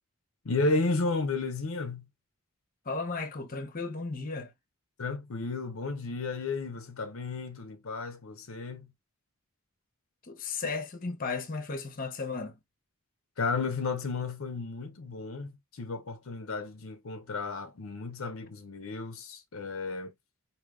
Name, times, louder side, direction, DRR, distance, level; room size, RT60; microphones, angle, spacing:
voice 1, 0.4-2.1 5.0-8.9 13.4-20.1, left 3 dB, 75° left, 0.7 m, -33 dB
voice 2, 2.8-4.5 10.2-12.6, left 4 dB, 40° left, 0.9 m, -35 dB
4.8 x 2.7 x 2.5 m
head